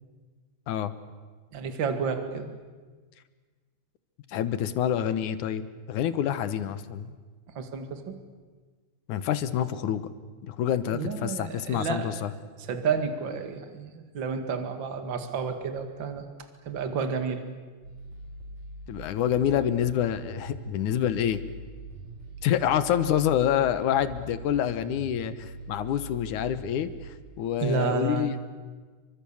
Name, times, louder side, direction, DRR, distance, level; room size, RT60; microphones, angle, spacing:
voice 1, 1.5-2.5 7.5-8.1 10.9-12.2 12.6-16.2 16.7-17.4 27.6-28.4, right 5 dB, 40° right, 7 dB, 2.5 m, -30 dB
voice 2, 4.3-7.1 9.1-10.1 10.4-12.3 18.9-21.4 22.4-28.3, left 10 dB, 80° left, 13 dB, 2.6 m, -27 dB
sound 1, 17.8-27.1, right 1 dB, 70° right, 7.5 m, -43 dB
29.5 x 24.5 x 7.2 m, 1.4 s
omnidirectional pair, 3.5 m